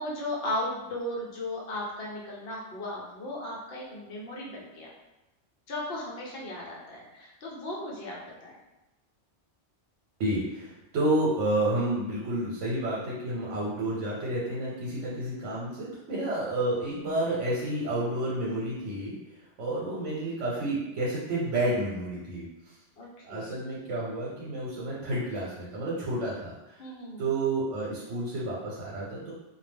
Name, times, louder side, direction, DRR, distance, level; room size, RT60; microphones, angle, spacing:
voice 1, 0.0-4.9 5.7-8.6 19.9-20.0 23.0-23.5 26.8-27.2, left 1 dB, 60° left, -4 dB, 0.8 m, -36 dB
voice 2, 10.2-19.2 19.6-22.4 23.3-26.5 27.2-29.3, right 1 dB, 85° right, -6 dB, 1.0 m, -30 dB
2.3 x 2.0 x 3.3 m, 1.0 s
omnidirectional pair, 1.2 m